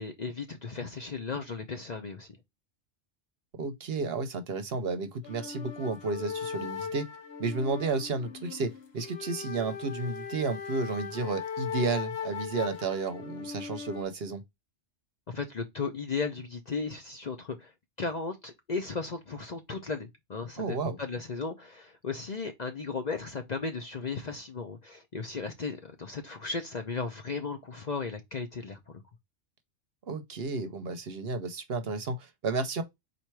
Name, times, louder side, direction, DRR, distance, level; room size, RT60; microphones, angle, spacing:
voice 1, 0.0-2.3 15.3-17.7 18.0-28.8, left 4 dB, 45° left, 0.6 m, -35 dB
voice 2, 3.6-7.1 7.4-14.4 20.6-21.0 30.0-32.8, right 3 dB, 60° right, 0.9 m, -32 dB
sound 1, 5.2-14.0, left 7 dB, 60° left, 1.0 m, -38 dB
4.3 x 2.6 x 4.5 m
omnidirectional pair, 1.3 m